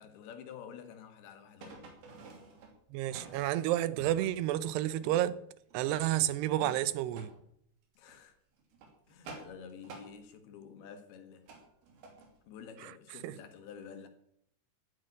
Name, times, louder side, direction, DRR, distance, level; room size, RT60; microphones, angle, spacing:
voice 1, 0.0-1.9 8.0-8.4 9.1-11.6 12.4-14.1, left 7 dB, 70° left, 3.5 m, -50 dB
sound 1, 1.6-3.5 4.0-5.3 5.7-7.4 7.9-8.2 8.6-10.1 11.5-12.3 12.6-12.7, right 3 dB, 65° right, 4.6 m, -51 dB
voice 2, 2.9-5.4 5.7-7.3 13.2-13.4, right 13 dB, 85° right, 2.9 m, -30 dB
12.5 x 9.1 x 9.8 m
omnidirectional pair, 4.7 m